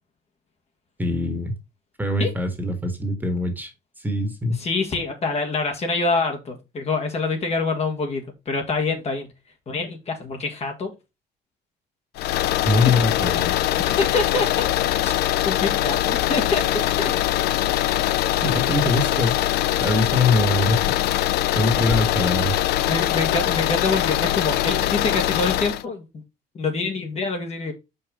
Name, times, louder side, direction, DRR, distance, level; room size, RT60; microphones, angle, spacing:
voice 1, 1.0-1.5 2.0-3.7 4.0-4.6 12.6-13.6 18.4-19.4 19.8-20.8 21.1-22.6, left 2 dB, 10° right, 5 dB, 1.7 m, -23 dB
voice 2, 4.6-9.3 9.7-10.9 13.8-14.7 15.0-15.1 15.4-17.2 22.9-26.0 26.5-27.7, left 3 dB, 40° left, 3 dB, 1.6 m, -26 dB
sound 1, 12.2-25.8, left 13 dB, 75° left, 0.4 m, -22 dB
5.5 x 5.0 x 3.8 m, 0.25 s
cardioid pair, 110°, 17 cm